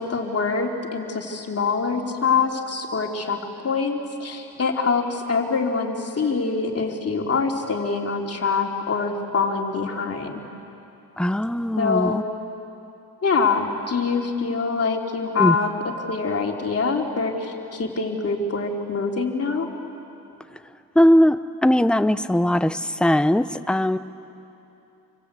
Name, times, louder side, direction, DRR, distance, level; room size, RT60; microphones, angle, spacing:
voice 1, 0.0-3.4 3.6-10.3 11.8-12.2 13.2-15.7 16.0-19.7, left 4 dB, 40° left, 1 dB, 3.3 m, -24 dB
voice 2, 11.2-12.2 15.4-15.6 20.9-24.0, left 1 dB, 5° left, 12 dB, 0.7 m, -19 dB
28.5 x 24.0 x 8.3 m, 2.9 s
cardioid pair, 90°, 36 cm